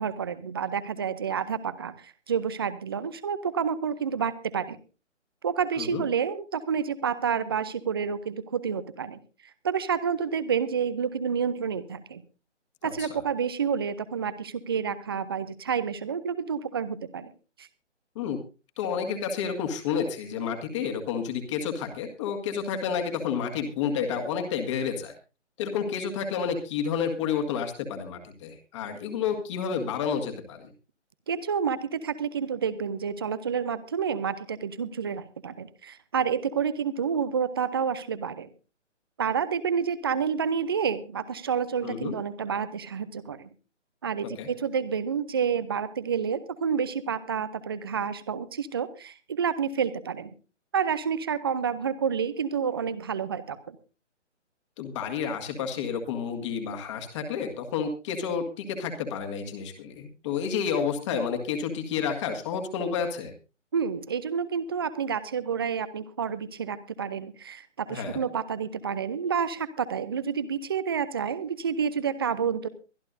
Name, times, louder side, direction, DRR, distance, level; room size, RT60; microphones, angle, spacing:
voice 1, 0.0-4.8 5.4-9.2 9.6-12.2 12.8-17.3 17.6-17.7 31.3-38.5 39.2-43.5 44.0-50.3 50.7-53.8 63.7-72.7, right 7 dB, 20° right, 15 dB, 0.6 m, -29 dB
voice 2, 12.8-13.2 18.2-18.4 18.8-25.2 25.6-30.7 41.8-42.1 44.4-44.5 54.8-63.3 67.9-68.2, left 7 dB, 25° left, 5 dB, 1.9 m, -30 dB
23.5 x 11.5 x 2.7 m, 0.32 s
figure-of-eight pair, 145°, 36 cm